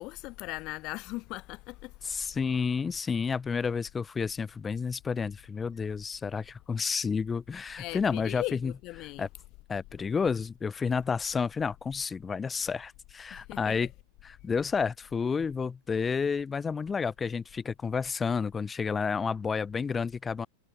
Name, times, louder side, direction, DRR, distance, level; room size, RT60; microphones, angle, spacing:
voice 1, 0.0-1.9 7.8-9.3 13.3-13.7, left 21 dB, 40° left, 1.0 m, -39 dB
voice 2, 2.0-8.7 9.0-9.3 9.7-13.9 14.2-20.5, left 5 dB, 15° left, 2.2 m, -30 dB
figure-of-eight pair, 90°, 0 cm